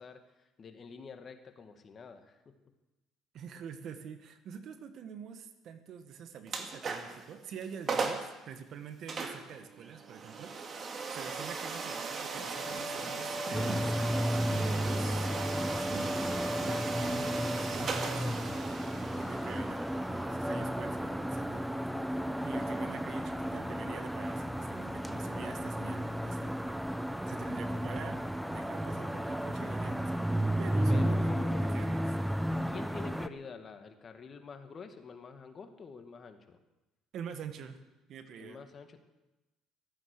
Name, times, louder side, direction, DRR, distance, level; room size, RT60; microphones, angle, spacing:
voice 1, 0.0-2.4 16.5-16.9 27.7-27.8 30.9-31.9 32.7-36.6 38.4-39.0, left 5 dB, 40° left, 7 dB, 2.0 m, -47 dB
voice 2, 3.3-10.5 10.9-15.9 16.6-18.4 19.1-19.8 20.1-21.6 22.0-26.5 26.9-28.2 28.5-30.2 30.6-32.0 32.5-32.7 37.1-37.8 38.1-38.6, right 7 dB, 60° right, 9 dB, 1.6 m, -46 dB
sound 1, 6.5-7.2 7.6-7.7 7.9-8.3 9.1-21.8, right 3 dB, 40° right, 2.3 m, -37 dB
sound 2, 13.5-33.3, equal, 5° right, 0.8 m, -33 dB
15.0 x 13.5 x 6.8 m, 1.0 s
supercardioid pair, 80°, 0 cm